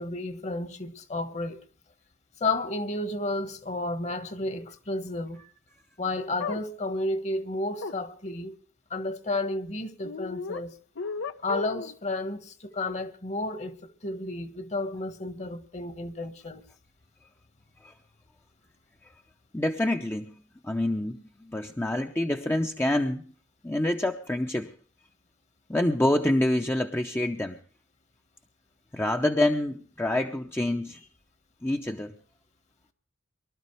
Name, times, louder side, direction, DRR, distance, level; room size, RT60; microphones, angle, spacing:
voice 1, 0.0-1.6 2.4-5.4 6.0-8.6 8.9-10.7 11.4-16.6, left 2 dB, 35° left, 1.3 m, -32 dB
sound 1, 6.4-6.6 7.8-8.0 10.0-10.6 11.0-12.0, left 5 dB, 75° left, 0.8 m, -34 dB
voice 2, 19.5-20.3 20.6-23.3 23.6-24.7 25.7-27.6 28.9-31.0 31.6-32.1, left 1 dB, 10° left, 0.7 m, -27 dB
24.0 x 12.5 x 3.2 m
head